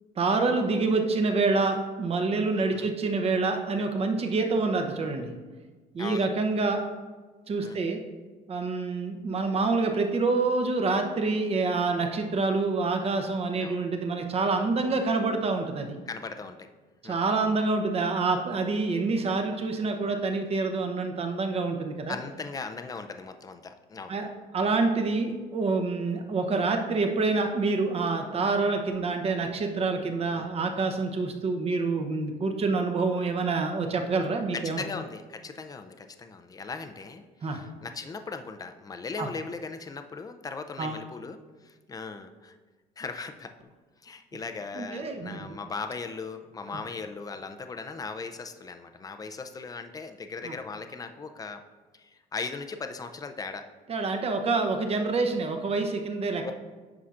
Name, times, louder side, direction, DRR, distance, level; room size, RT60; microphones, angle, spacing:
voice 1, 0.2-5.3 5.9-6.8 7.5-8.0 8.5-16.0 17.0-22.1 24.1-24.3 24.5-34.8 37.4-37.6 39.2-39.3 40.8-41.0 44.7-45.5 50.4-50.5 53.9-56.4, right 3 dB, 35° right, 4 dB, 0.8 m, -27 dB
voice 2, 2.6-2.9 6.0-6.3 7.6-7.8 13.6-13.8 14.8-15.0 16.1-16.7 17.0-17.3 22.1-24.2 30.3-30.5 34.5-42.6 43.0-43.5 44.0-51.6 51.9-53.7 56.4-56.5, left 4 dB, 20° left, 7 dB, 0.5 m, -38 dB
9.5 x 5.7 x 2.5 m, 1.4 s
cardioid pair, 110°, 17 cm